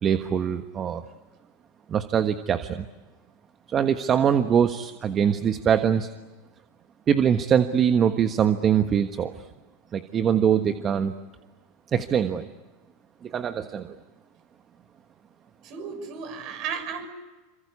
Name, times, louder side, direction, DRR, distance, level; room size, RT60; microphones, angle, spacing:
voice 1, 0.0-1.0 1.9-2.8 3.7-6.1 7.1-9.3 9.9-11.1 11.9-12.5 13.2-14.0, right 8 dB, 30° right, 9 dB, 1.4 m, -23 dB
voice 2, 15.6-17.1, right 6 dB, 50° right, 8 dB, 6.6 m, -34 dB
28.0 x 25.0 x 8.4 m, 1.2 s
hypercardioid pair, 110°, 0 cm